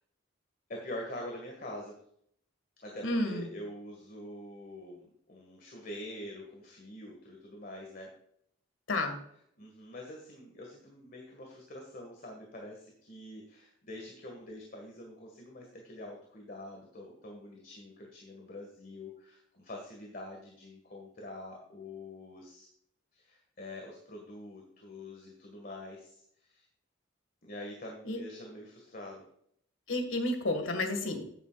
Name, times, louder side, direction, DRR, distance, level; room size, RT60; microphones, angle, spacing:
voice 1, 0.7-2.0 2.8-8.1 9.6-22.7 23.1-26.7 27.4-29.2, left 1 dB, 45° left, 0 dB, 1.9 m, -45 dB
voice 2, 3.0-3.5 8.9-9.2 28.1-28.2 29.9-31.3, left 2 dB, 90° left, 5 dB, 2.0 m, -31 dB
11.5 x 9.8 x 2.5 m, 0.67 s
head